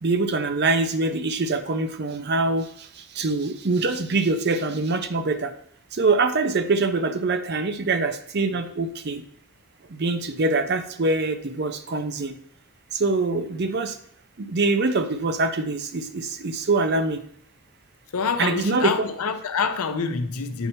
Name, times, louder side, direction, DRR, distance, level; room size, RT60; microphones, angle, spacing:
voice 1, 0.0-5.5 5.9-9.2 9.9-12.3 12.9-14.0 14.4-17.2 18.4-19.1, right 3 dB, 45° right, 9 dB, 0.6 m, -24 dB
voice 2, 18.1-20.7, left 5 dB, 80° left, 9 dB, 0.6 m, -26 dB
8.0 x 2.9 x 5.4 m, 0.67 s
head